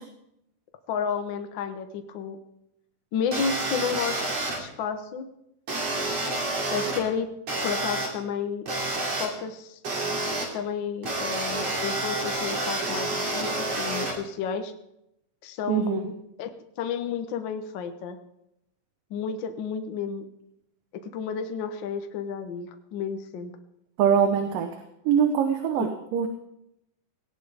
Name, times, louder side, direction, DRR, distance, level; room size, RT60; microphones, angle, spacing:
voice 1, 0.9-2.4 3.1-4.3 4.6-5.3 6.7-7.3 7.6-8.7 9.2-9.8 10.5-13.5 13.8-14.7 15.4-16.1 16.4-16.5 16.8-18.2 19.1-20.2 21.0-23.5 25.8-25.9, left 6 dB, 85° left, 7 dB, 1.0 m, -31 dB
sound 1, 3.3-4.6 5.7-7.0 7.5-8.1 8.7-9.3 9.8-10.4 11.0-14.1, right 2 dB, 50° right, 3.6 m, -29 dB
voice 2, 15.7-16.0 24.0-24.7 25.1-26.3, right 8 dB, 80° right, 6 dB, 2.7 m, -23 dB
18.0 x 18.0 x 3.5 m, 0.84 s
omnidirectional pair, 3.8 m